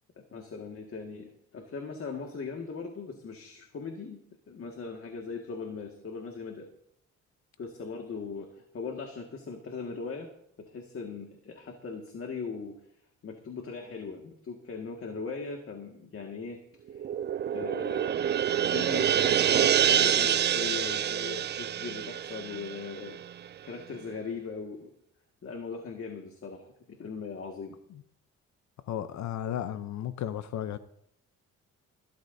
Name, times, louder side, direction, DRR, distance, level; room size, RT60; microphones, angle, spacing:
voice 1, 0.2-4.2 4.5-6.7 7.6-10.3 10.6-12.8 13.2-16.6 16.9-17.1 17.5-24.9 25.4-27.8, left 4 dB, 45° left, 2.0 m, -39 dB
sound 1, 16.9-23.5, right 9 dB, 35° right, 0.4 m, -27 dB
voice 2, 28.9-30.8, left 10 dB, 65° left, 0.8 m, -34 dB
20.5 x 13.0 x 2.7 m
cardioid pair, 90°, 30 cm